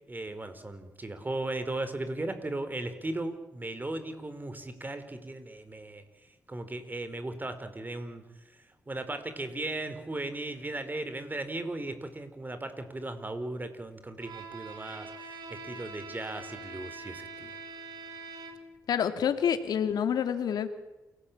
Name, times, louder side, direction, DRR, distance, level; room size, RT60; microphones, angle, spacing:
voice 1, 0.1-6.0 6.5-8.2 8.9-15.1 15.5-17.5, right 2 dB, 25° right, 10 dB, 4.8 m, -37 dB
Bowed string instrument, 14.2-18.9, right 4 dB, 80° right, 4.3 m, -44 dB
voice 2, 18.9-20.7, left 8 dB, 85° left, 9 dB, 2.6 m, -27 dB
28.5 x 18.0 x 8.8 m, 1.0 s
cardioid pair, 55°, 7 cm